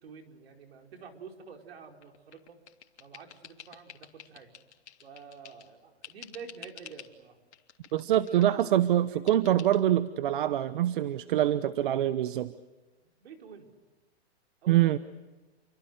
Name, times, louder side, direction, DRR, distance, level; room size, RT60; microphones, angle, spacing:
voice 1, 0.0-2.6 3.0-4.5 5.0-7.4 8.1-9.5 13.2-13.7 14.6-15.0, right 5 dB, 65° right, 3 dB, 5.0 m, -48 dB
sound 1, 2.0-5.7 6.0-7.1 7.5-8.7 9.3-9.8, left 9 dB, 85° left, 3.3 m, -50 dB
voice 2, 7.9-12.5 14.7-15.0, right 12 dB, 50° right, 14 dB, 0.9 m, -25 dB
29.5 x 24.5 x 6.7 m, 1.2 s
hypercardioid pair, 165°, 33 cm